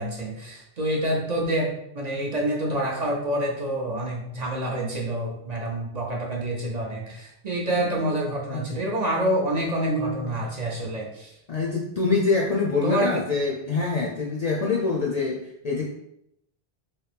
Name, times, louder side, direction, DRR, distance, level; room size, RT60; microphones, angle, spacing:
voice 1, 0.0-11.3 12.8-13.2, right 1 dB, 45° right, -2 dB, 0.6 m, -27 dB
sound 1, 9.9-10.9, right 3 dB, 90° right, 1.2 m, -33 dB
voice 2, 11.5-15.9, left 4 dB, 55° left, -2 dB, 0.4 m, -25 dB
3.3 x 2.8 x 3.3 m, 0.78 s
omnidirectional pair, 1.1 m